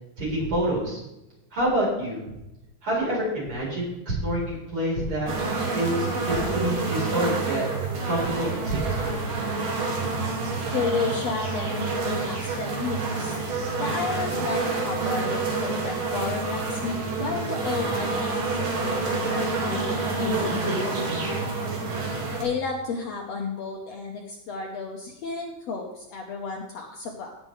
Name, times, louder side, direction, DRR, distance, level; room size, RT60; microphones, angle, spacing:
voice 1, 0.2-1.0 1.5-2.2 2.8-5.3 5.7-7.6 8.0-9.2, right 1 dB, 40° right, -4 dB, 5.0 m, -27 dB
sound 1, 5.3-22.4, right 3 dB, 80° right, 3.9 m, -28 dB
voice 2, 10.7-13.4 13.8-20.9 22.2-27.4, left 4 dB, 65° left, 1 dB, 1.9 m, -32 dB
17.5 x 7.5 x 3.3 m, 0.93 s
omnidirectional pair, 3.8 m